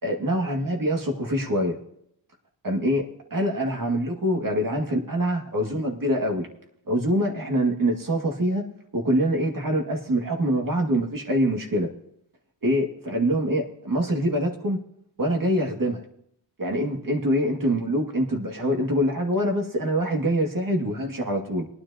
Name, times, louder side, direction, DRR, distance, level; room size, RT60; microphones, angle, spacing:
voice 1, 0.0-1.8 2.6-3.0 3.3-6.5 6.9-8.6 8.9-11.9 12.6-14.8 15.2-16.1 16.6-21.7, equal, 40° right, 1 dB, 2.2 m, -24 dB
21.5 x 10.0 x 2.9 m, 0.72 s
cardioid pair, 75°, 48 cm